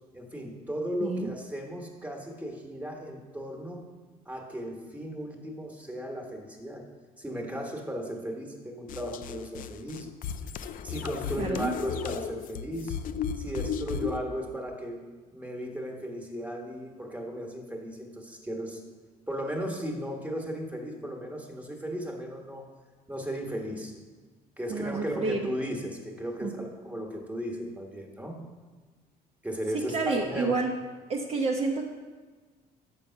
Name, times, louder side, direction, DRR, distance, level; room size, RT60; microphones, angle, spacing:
voice 1, 0.1-3.8 4.2-6.8 7.2-10.1 10.8-13.0 13.4-15.0 15.3-18.8 19.3-22.6 23.1-23.9 24.6-28.4 29.4-30.5, equal, 10° right, 1 dB, 1.3 m, -36 dB
sound 1, 8.9-14.2, left 7 dB, 55° left, 0.4 m, -35 dB
voice 2, 11.4-11.7 24.7-25.4 26.4-26.5 29.9-30.7 31.1-31.9, right 3 dB, 35° right, 0 dB, 0.7 m, -29 dB
6.9 x 5.4 x 5.6 m, 1.3 s
cardioid pair, 110°, 17 cm